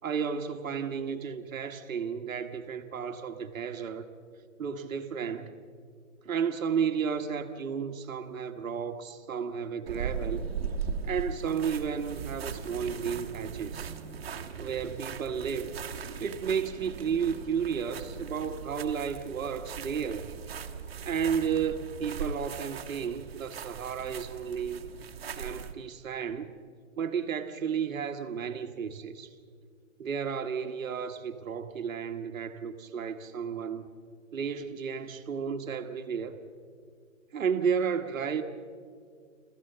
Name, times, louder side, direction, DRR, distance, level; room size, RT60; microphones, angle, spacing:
voice 1, 0.0-4.0 4.6-5.5 6.2-10.4 11.1-13.9 14.6-15.8 16.2-20.3 21.0-24.9 25.4-26.5 27.0-29.3 30.0-33.9 34.3-36.4 37.3-38.4, right 7 dB, 75° right, 6 dB, 1.4 m, -32 dB
sound 1, 9.9-25.7, right 6 dB, 45° right, 1.3 m, -39 dB
28.0 x 14.5 x 6.7 m, 2.1 s
hypercardioid pair, 175°, 40 cm